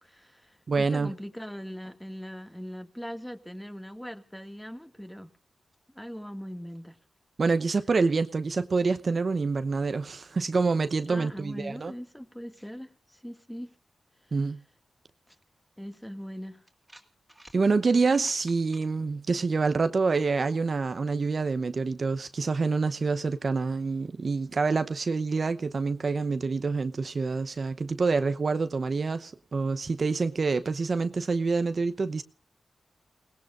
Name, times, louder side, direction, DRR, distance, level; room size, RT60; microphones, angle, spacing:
voice 1, 0.0-5.3 5.9-7.0 11.1-13.8 14.2-14.4 15.3-15.4 15.8-16.6, equal, 5° left, 2.1 m, -40 dB
voice 2, 0.7-1.1 7.4-11.9 14.3-14.6 17.5-32.2, right 4 dB, 50° right, 0.8 m, -27 dB
sound 1, 15.9-16.0 16.7-17.6 18.0-18.9, right 1 dB, 10° right, 2.8 m, -52 dB
29.0 x 19.0 x 2.5 m
cardioid pair, 80°, 0 cm